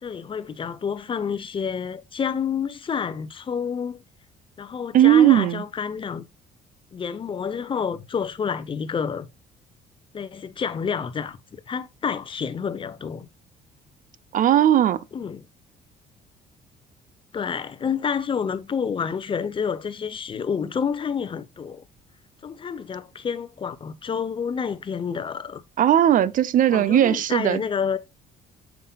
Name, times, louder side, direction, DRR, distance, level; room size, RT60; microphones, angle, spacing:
voice 1, 0.0-4.0 4.6-6.3 6.9-9.3 10.1-13.3 15.1-15.4 17.3-21.8 22.4-25.6 26.7-28.0, left 6 dB, 30° left, 0.8 m, -29 dB
voice 2, 4.9-5.6 14.3-15.0 25.8-27.6, right 11 dB, 50° right, 0.6 m, -17 dB
7.5 x 5.9 x 2.3 m
cardioid pair, 110°, 17 cm